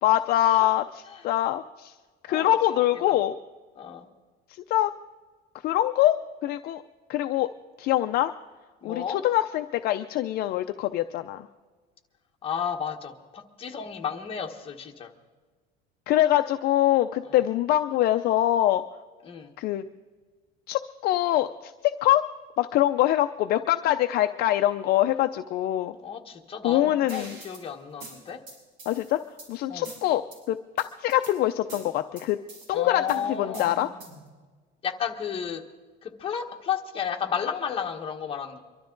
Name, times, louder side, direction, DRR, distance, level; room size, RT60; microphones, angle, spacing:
voice 1, 0.0-1.9 2.3-3.4 4.7-4.9 5.6-6.2 6.4-6.8 7.1-7.5 7.8-8.3 8.8-11.5 16.1-18.8 19.6-19.8 20.7-22.2 22.6-25.9 26.6-27.4 28.9-29.2 29.5-30.2 30.5-30.6 31.0-32.4 32.7-33.0 33.3-33.9, left 13 dB, 50° left, 8 dB, 0.5 m, -24 dB
voice 2, 2.3-3.1 3.8-4.1 8.8-9.2 12.4-15.1 17.3-17.4 19.2-19.5 26.0-28.4 29.7-29.9 32.7-33.8 34.8-35.6 36.0-38.6, left 7 dB, 25° left, 3 dB, 1.3 m, -33 dB
sound 1, 27.1-27.6 28.0-29.5 29.8-30.4 30.8-31.3 31.7-32.7 33.1-34.3, right 2 dB, 60° right, 5.9 m, -43 dB
24.0 x 12.5 x 3.9 m, 1.4 s
cardioid pair, 150°, 20 cm